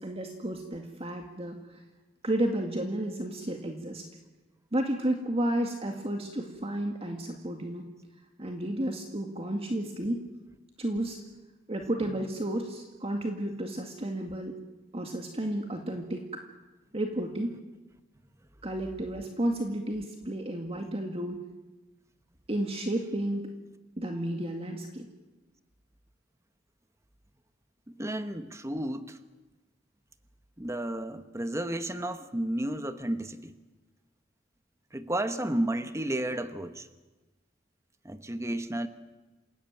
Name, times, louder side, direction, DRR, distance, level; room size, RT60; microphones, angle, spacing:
voice 1, 0.0-1.8 2.2-4.0 4.7-7.8 8.4-10.2 10.8-11.2 11.7-14.5 14.9-16.2 16.9-17.5 18.6-21.4 22.5-23.5 24.0-25.1, right 1 dB, 30° right, 3 dB, 2.0 m, -32 dB
voice 2, 28.0-29.2 30.6-33.5 34.9-36.9 38.0-38.9, right 1 dB, 15° right, 9 dB, 1.1 m, -32 dB
28.0 x 17.0 x 9.1 m, 1.1 s
head